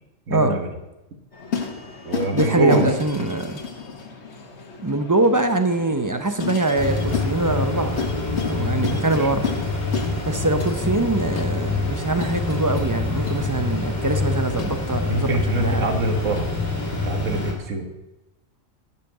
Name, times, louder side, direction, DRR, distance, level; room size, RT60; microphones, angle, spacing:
voice 1, 0.3-0.7 2.1-2.9 8.8-9.3 15.1-16.5 17.1-17.9, right 2 dB, 75° right, 5 dB, 1.8 m, -24 dB
sound 1, 1.3-17.1, left 5 dB, 60° left, 1.6 m, -33 dB
voice 2, 2.3-3.6 4.8-8.0 8.5-9.5 10.3-15.8, right 2 dB, 20° right, 8 dB, 0.5 m, -23 dB
sound 2, 6.8-17.5, left 3 dB, 35° left, 2.3 m, -26 dB
12.0 x 5.8 x 7.6 m, 0.96 s
omnidirectional pair, 1.3 m